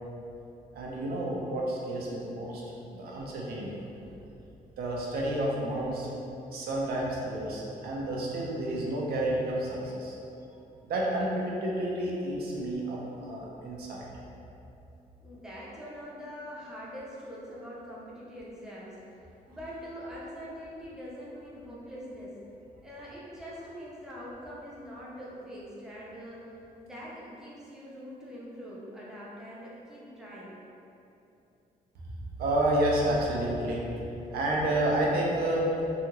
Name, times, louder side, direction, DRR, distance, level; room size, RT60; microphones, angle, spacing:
voice 1, 0.7-2.6 2.9-3.8 4.8-6.1 6.5-10.2 10.8-14.1 32.4-33.9 34.3-35.7, right 1 dB, 85° right, -3 dB, 0.5 m, -30 dB
voice 2, 15.2-19.2 19.5-22.4 22.8-26.5 26.8-30.6, equal, 5° right, -7 dB, 0.5 m, -43 dB
2.7 x 2.4 x 2.9 m, 2.8 s
cardioid pair, 155°, 16 cm